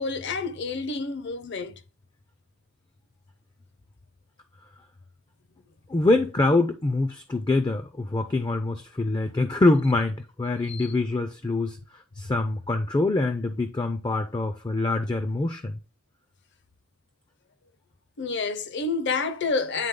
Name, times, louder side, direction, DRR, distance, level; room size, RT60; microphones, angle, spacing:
voice 1, 0.0-1.8 10.7-10.9 18.2-19.9, left 4 dB, 55° left, 0.7 m, -29 dB
voice 2, 5.9-15.8, left 2 dB, 20° left, 0.4 m, -25 dB
9.1 x 3.5 x 3.7 m
head